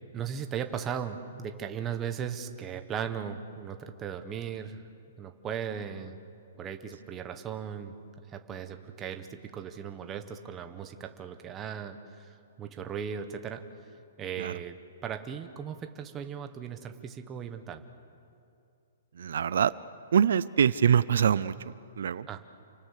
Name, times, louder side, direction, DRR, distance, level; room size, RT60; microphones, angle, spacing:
voice 1, 0.1-4.8 5.2-6.2 6.6-7.9 8.3-13.6 14.2-14.8 15.0-17.8 22.3-22.4, right 8 dB, 15° right, 7 dB, 1.0 m, -37 dB
voice 2, 19.1-19.7 20.1-22.3, right 8 dB, 65° right, 17 dB, 0.5 m, -25 dB
29.0 x 23.5 x 6.6 m, 2.6 s
hypercardioid pair, 175°, 0 cm